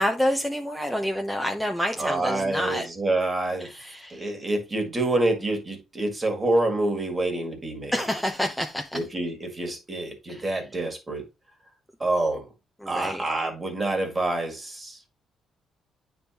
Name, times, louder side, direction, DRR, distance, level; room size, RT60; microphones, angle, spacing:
voice 1, 0.0-2.9 3.6-4.3 7.9-9.1 10.3-10.5 12.8-13.3, equal, 5° left, 0.7 m, -28 dB
voice 2, 2.0-3.7 4.1-7.9 8.9-11.3 12.0-12.5 12.9-15.0, right 2 dB, 25° right, 1.9 m, -27 dB
9.2 x 3.6 x 2.9 m
cardioid pair, 90°, 0 cm